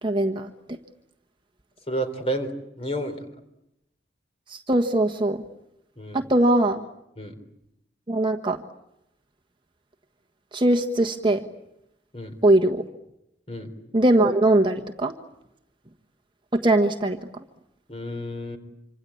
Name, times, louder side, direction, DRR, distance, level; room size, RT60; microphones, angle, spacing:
voice 1, 0.0-0.5 4.5-5.4 6.1-6.8 8.1-8.6 10.5-11.4 12.4-12.8 13.9-15.1 16.5-17.2, right 1 dB, 25° right, 3 dB, 1.4 m, -21 dB
voice 2, 1.9-3.3 6.0-6.2 7.2-7.4 12.1-12.3 13.5-13.7 17.9-18.6, right 1 dB, 30° left, 7 dB, 3.9 m, -31 dB
26.5 x 26.0 x 8.6 m, 0.84 s
head